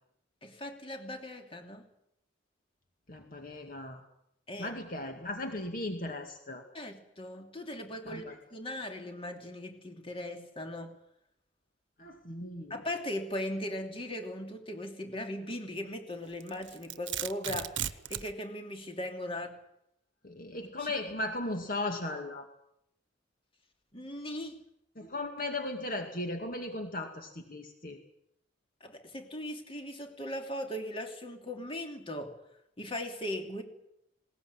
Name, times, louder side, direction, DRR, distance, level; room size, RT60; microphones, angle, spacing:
voice 1, 0.4-1.9 4.5-4.8 6.7-10.9 12.7-19.6 20.6-20.9 23.9-24.6 28.8-32.4 32.8-33.6, left 1 dB, 30° left, 4 dB, 3.0 m, -39 dB
voice 2, 3.1-4.0 4.6-6.6 8.1-8.4 12.0-12.7 20.2-22.4 25.0-28.0, left 2 dB, 50° left, 4 dB, 2.3 m, -37 dB
Domestic sounds home sounds, 16.4-18.3, right 11 dB, 70° right, 1.0 m, -36 dB
20.5 x 19.0 x 9.7 m, 0.78 s
head